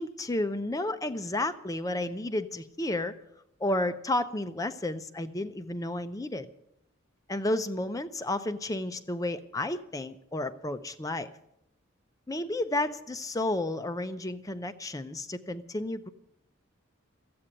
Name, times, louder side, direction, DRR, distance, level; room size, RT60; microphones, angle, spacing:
voice 1, 0.0-3.1 3.6-6.5 7.3-11.3 12.3-16.1, left 1 dB, 15° left, 10 dB, 0.5 m, -32 dB
13.5 x 8.7 x 10.0 m, 0.78 s
head